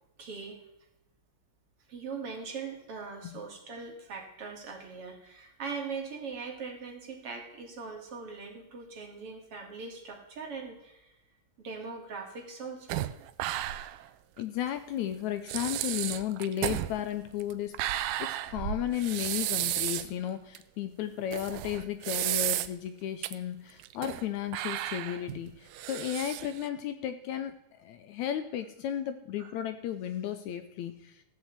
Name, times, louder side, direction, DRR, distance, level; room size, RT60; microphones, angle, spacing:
voice 1, 0.2-0.6 1.9-11.1 11.6-13.0 29.4-29.5, right 5 dB, 45° right, 1 dB, 2.8 m, -41 dB
sound 1, 12.9-14.1 14.4-14.5 15.1-15.2 15.5-20.1 20.5-20.6 21.3-22.9 23.2-23.3 23.8-24.3 24.5-26.7, right 14 dB, 85° right, 2.3 m, -33 dB
voice 2, 14.4-31.2, left 10 dB, 75° left, 9 dB, 1.9 m, -34 dB
15.0 x 6.3 x 8.1 m, 0.91 s
omnidirectional pair, 3.7 m